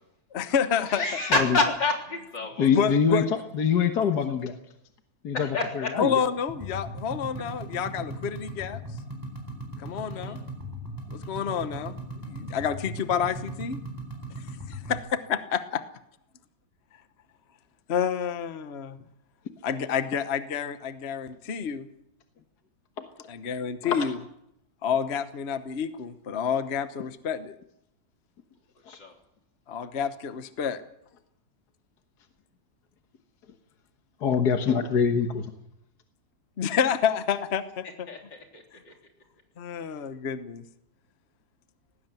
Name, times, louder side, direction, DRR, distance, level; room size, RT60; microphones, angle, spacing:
voice 1, 0.3-1.0 2.7-3.3 6.0-8.8 9.8-10.4 11.1-13.8 14.7-15.8 17.9-19.0 19.6-21.9 23.3-24.2 24.8-27.6 29.7-30.8 36.6-38.1 39.6-40.6, left 7 dB, 40° left, 11 dB, 1.1 m, -29 dB
voice 2, 0.9-2.7 5.3-5.9 9.9-10.4 28.9-29.1 38.1-38.9, left 2 dB, 90° left, 2 dB, 4.4 m, -29 dB
voice 3, 2.6-3.2 3.6-4.6 5.2-6.2 23.8-24.1 34.2-35.5, left 6 dB, 65° left, 6 dB, 1.9 m, -24 dB
sound 1, 6.5-15.0, right 1 dB, 10° right, 4.0 m, -38 dB
18.5 x 16.5 x 9.1 m, 0.79 s
omnidirectional pair, 1.9 m